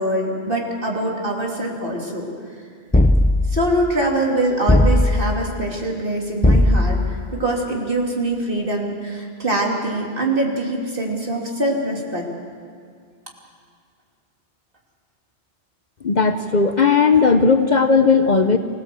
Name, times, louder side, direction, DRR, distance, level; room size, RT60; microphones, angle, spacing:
voice 1, 0.0-2.3 3.5-12.2, right 1 dB, 50° right, -1 dB, 3.1 m, -23 dB
sound 1, 2.9-3.7 4.7-5.4 6.4-7.2, left 1 dB, 10° left, 0.4 m, -16 dB
voice 2, 16.0-18.6, left 5 dB, 45° left, 7 dB, 0.8 m, -16 dB
25.0 x 16.5 x 7.7 m, 2.1 s
omnidirectional pair, 1.1 m